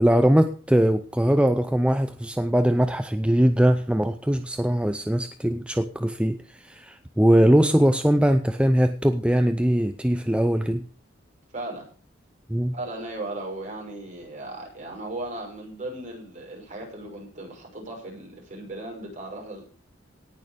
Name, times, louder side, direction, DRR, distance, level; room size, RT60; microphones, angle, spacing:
voice 1, 0.0-10.8 12.5-12.7, equal, 5° right, 9 dB, 0.5 m, -21 dB
voice 2, 11.5-11.9 12.7-19.6, right 2 dB, 40° right, -1 dB, 6.3 m, -36 dB
18.0 x 6.5 x 5.2 m, 0.41 s
head